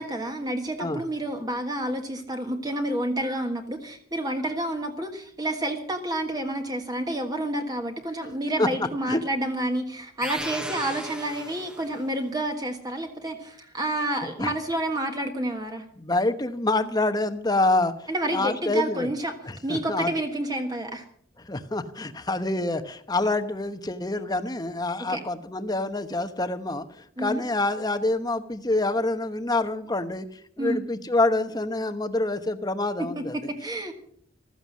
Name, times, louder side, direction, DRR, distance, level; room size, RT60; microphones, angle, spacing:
voice 1, 0.0-15.8 18.1-19.3 19.6-21.0 25.1-25.2 27.2-27.4 30.6-30.8 33.0-33.9, right 1 dB, 20° right, 4 dB, 1.5 m, -29 dB
sound 1, 10.2-12.1, right 1 dB, 5° right, 0.9 m, -36 dB
voice 2, 16.0-19.1 19.4-20.1 21.4-26.8 27.2-30.3 30.6-33.3, left 2 dB, 20° left, 10 dB, 0.9 m, -26 dB
15.0 x 13.5 x 6.2 m, 0.62 s
head